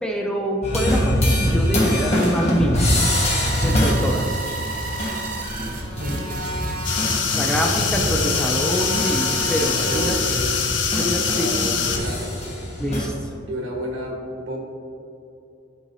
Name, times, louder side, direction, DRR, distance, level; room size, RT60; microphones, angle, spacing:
voice 1, 0.0-2.9 3.6-4.4 7.3-10.2 11.0-11.7 12.8-13.3, equal, 5° left, 0 dB, 0.5 m, -25 dB
sound 1, 0.6-8.1 8.4-13.1, left 1 dB, 35° left, 1.4 m, -24 dB
sound 2, 3.0-10.1, right 2 dB, 40° right, 1.3 m, -31 dB
sound 3, 6.8-12.0, left 5 dB, 65° left, 0.7 m, -23 dB
voice 2, 7.4-8.4 9.9-10.6 11.0-12.5 13.5-14.6, equal, 70° right, -1 dB, 1.3 m, -31 dB
11.5 x 4.7 x 2.7 m, 2.8 s
head